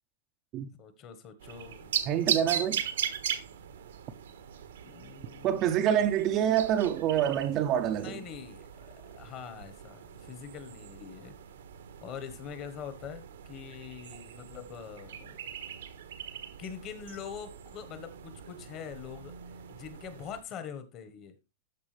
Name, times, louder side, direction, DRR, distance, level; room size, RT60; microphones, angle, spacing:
voice 1, 0.8-1.9 4.8-5.7 8.0-11.4 12.0-15.4 16.6-19.3 19.7-21.3, left 7 dB, 30° left, 1.3 m, -44 dB
sound 1, 1.4-20.4, right 9 dB, 85° right, 1.4 m, -39 dB
voice 2, 2.1-2.8 5.4-8.2, right 10 dB, 30° right, 0.6 m, -26 dB
13.5 x 4.8 x 3.3 m
supercardioid pair, 160°, 0 cm